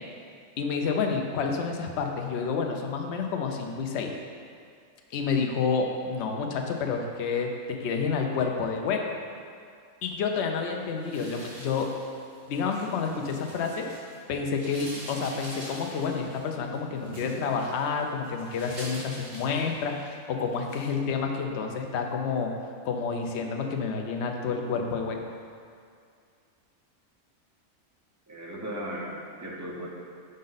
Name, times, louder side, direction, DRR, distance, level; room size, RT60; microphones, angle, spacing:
voice 1, 0.6-4.1 5.1-9.2 10.0-11.9 12.5-13.9 14.3-22.5 22.8-25.2, left 5 dB, 60° left, 3 dB, 0.8 m, -29 dB
sound 1, 11.0-14.2 14.5-20.1 20.5-20.9, right 1 dB, 80° right, 1.9 m, -44 dB
voice 2, 28.3-29.9, equal, 20° right, -3 dB, 0.5 m, -36 dB
5.3 x 5.2 x 3.9 m, 2.3 s
omnidirectional pair, 1.4 m